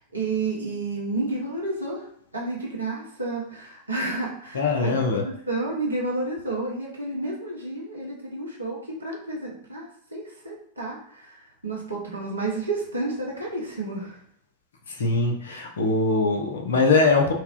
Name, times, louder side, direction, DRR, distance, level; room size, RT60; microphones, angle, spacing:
voice 1, 0.1-2.1 2.3-14.2, right 2 dB, 80° right, -3 dB, 0.9 m, -31 dB
voice 2, 4.5-5.2 15.0-17.3, left 3 dB, 65° left, 3 dB, 0.6 m, -22 dB
4.1 x 2.1 x 2.4 m, 0.67 s
figure-of-eight pair, 90°, 0 cm